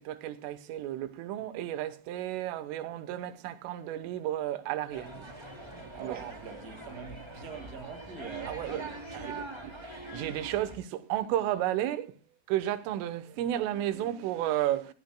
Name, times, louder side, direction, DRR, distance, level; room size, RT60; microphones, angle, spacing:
voice 1, 0.0-5.4 5.8-6.3 8.5-12.2 12.5-14.9, right 12 dB, 90° right, 3.7 m, -33 dB
sound 1, 4.9-10.8, right 2 dB, 10° right, 1.6 m, -43 dB
voice 2, 5.6-8.7, right 6 dB, 65° right, 0.9 m, -44 dB
24.5 x 14.5 x 2.2 m
omnidirectional pair, 5.6 m